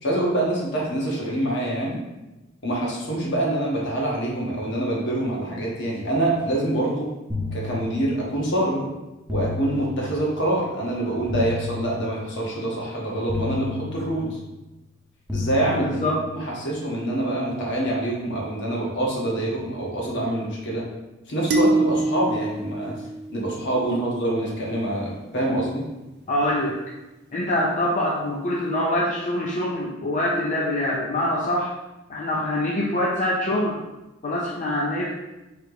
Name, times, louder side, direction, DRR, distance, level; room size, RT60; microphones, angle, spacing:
voice 1, 0.0-2.0 2.6-7.1 7.5-8.9 9.3-14.4 15.3-20.9 21.3-22.9 23.3-25.8, right 1 dB, 65° left, -4 dB, 1.2 m, -25 dB
sound 1, 7.3-8.5 9.3-10.5 11.3-12.5 13.3-14.5 15.3-16.5, left 3 dB, 5° right, 0.7 m, -32 dB
voice 2, 15.8-16.1 26.3-26.8 27.3-31.7 32.1-33.8 34.2-35.1, left 1 dB, 40° left, -4 dB, 0.5 m, -24 dB
sound 2, 21.5-23.9, right 2 dB, 55° right, 0.5 m, -24 dB
3.3 x 2.9 x 4.7 m, 1.0 s
head